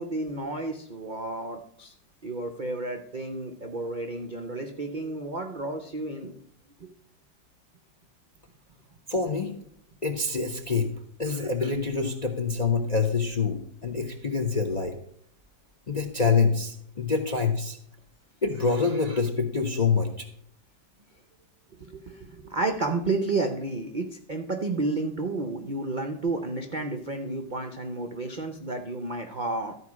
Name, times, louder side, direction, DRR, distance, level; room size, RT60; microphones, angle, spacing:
voice 1, 0.0-1.9 2.2-6.3 21.8-29.7, right 2 dB, 70° right, 5 dB, 0.4 m, -31 dB
voice 2, 9.1-9.5 10.0-10.9 11.2-15.0 15.9-17.8 18.4-20.3, left 4 dB, 45° left, 6 dB, 0.5 m, -26 dB
13.0 x 4.8 x 6.1 m, 0.68 s
omnidirectional pair, 2.0 m